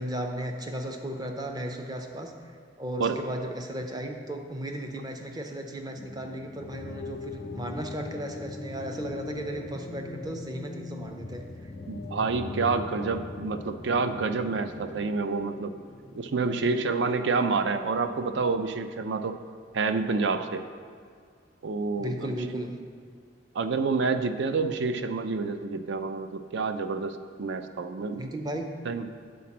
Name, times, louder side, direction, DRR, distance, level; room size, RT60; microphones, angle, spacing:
voice 1, 0.0-2.3 2.8-11.7 16.4-16.7 22.0-22.8 28.2-28.7, right 1 dB, 20° right, 4 dB, 0.6 m, -35 dB
sound 1, 6.0-18.6, left 3 dB, 30° left, 0.4 m, -41 dB
voice 2, 11.9-15.7 16.1-19.4 19.7-20.6 21.6-22.4 23.5-27.1 27.4-28.2 28.8-29.1, right 4 dB, 65° right, 9 dB, 0.4 m, -28 dB
8.4 x 4.2 x 5.9 m, 2.1 s
head